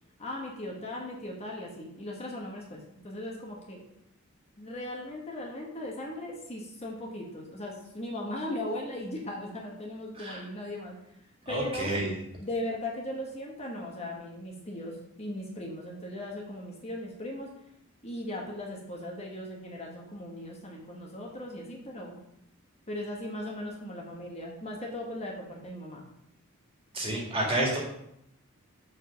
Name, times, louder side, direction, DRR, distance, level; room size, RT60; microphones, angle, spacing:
voice 1, 0.2-3.9 4.6-10.9 11.5-11.9 12.4-17.5 18.0-22.2 22.9-26.1 27.1-27.2, left 1 dB, 30° left, -1 dB, 1.2 m, -38 dB
voice 2, 11.4-12.2 26.9-27.8, right 1 dB, 25° right, -2 dB, 2.1 m, -29 dB
6.2 x 4.8 x 6.2 m, 0.79 s
head